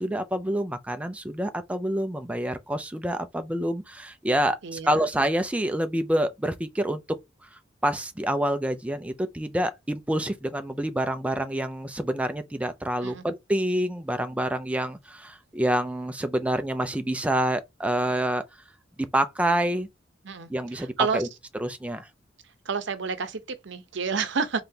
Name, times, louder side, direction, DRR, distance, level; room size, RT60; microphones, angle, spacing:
voice 1, 0.0-7.0 7.4-18.4 19.1-19.9 20.5-21.3 21.6-22.1, right 1 dB, 5° right, 0.4 m, -27 dB
voice 2, 4.6-5.0 13.0-13.2 20.2-21.2 22.7-24.6, right 5 dB, 70° right, 0.7 m, -30 dB
3.8 x 3.6 x 2.8 m
head